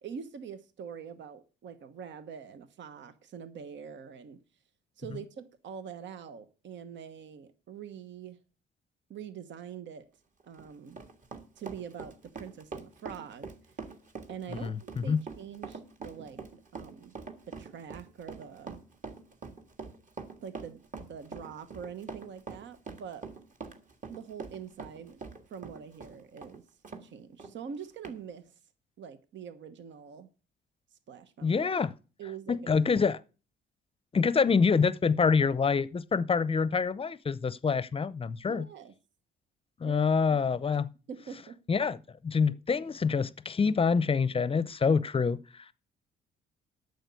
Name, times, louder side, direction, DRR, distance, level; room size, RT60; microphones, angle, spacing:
voice 1, 0.0-4.4 5.0-8.4 9.1-10.0 10.5-11.1 11.6-13.5 14.3-16.4 16.7-17.1 17.5-18.8 20.4-23.3 24.1-25.2 25.5-26.6 27.0-28.5 29.0-30.3 31.1-31.7 32.2-32.6 38.5-38.9 39.8-40.0 40.3-40.4 41.1-41.6 42.5-42.6, right 7 dB, 65° right, 1.2 m, -44 dB
Run, 10.4-27.1 27.4-27.5 28.0-28.2, right 4 dB, 40° right, 1.8 m, -44 dB
voice 2, 14.5-15.2 31.4-31.9 32.5-33.2 34.1-38.7 39.8-40.9 41.7-45.7, left 5 dB, 30° left, 0.6 m, -26 dB
8.9 x 6.6 x 8.2 m
cardioid pair, 90°, 20 cm